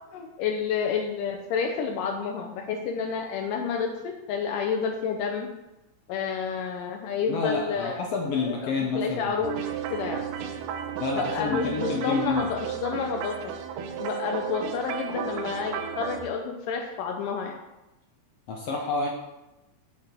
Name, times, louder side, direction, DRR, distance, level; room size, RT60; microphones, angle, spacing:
voice 1, 0.1-5.5 6.1-8.0 8.4-9.5 9.9-10.3 11.2-13.5 14.0-17.6, left 6 dB, 85° left, 2 dB, 2.4 m, -30 dB
voice 2, 7.3-9.3 11.0-12.5 18.5-19.1, left 4 dB, 70° left, 0 dB, 1.6 m, -28 dB
sound 1, 9.4-16.2, right 8 dB, 85° right, 2.3 m, -34 dB
8.2 x 7.5 x 4.5 m, 0.98 s
omnidirectional pair, 3.8 m